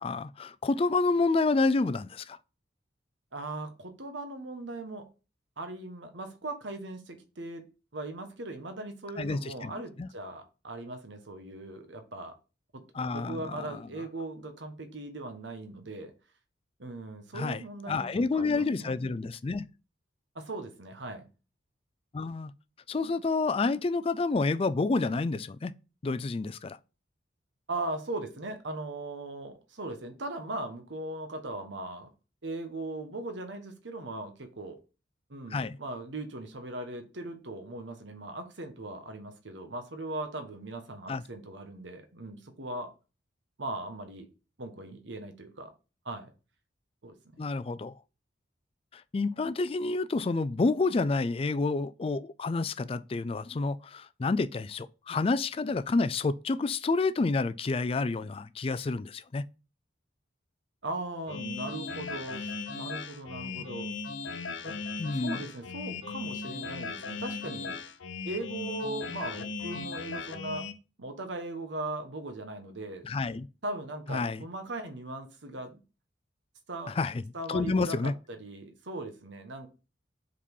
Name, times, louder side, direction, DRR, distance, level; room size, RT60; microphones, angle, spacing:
voice 1, 0.0-2.4 9.2-9.7 10.0-10.1 12.9-13.8 17.3-17.6 17.9-19.6 22.1-22.5 22.9-25.7 26.0-26.8 35.5-35.8 41.1-41.2 47.4-47.9 48.9-59.4 65.0-65.4 73.0-73.5 74.1-74.4 76.9-77.2 77.5-78.1, left 3 dB, 30° left, 0.3 m, -29 dB
voice 2, 3.3-5.1 5.6-7.6 7.9-12.4 12.7-16.1 16.8-19.0 20.3-21.3 27.7-32.1 32.4-34.8 35.3-42.9 43.6-44.3 44.6-45.7 46.0-46.3 47.0-47.4 60.8-63.9 64.6-64.8 65.2-67.8 68.2-70.7 71.0-73.1 73.6-75.8 76.7-77.0 77.3-79.7, right 2 dB, 70° right, 1.2 m, -39 dB
sound 1, 61.3-70.7, left 4 dB, 80° left, 0.7 m, -37 dB
5.1 x 4.2 x 5.3 m
head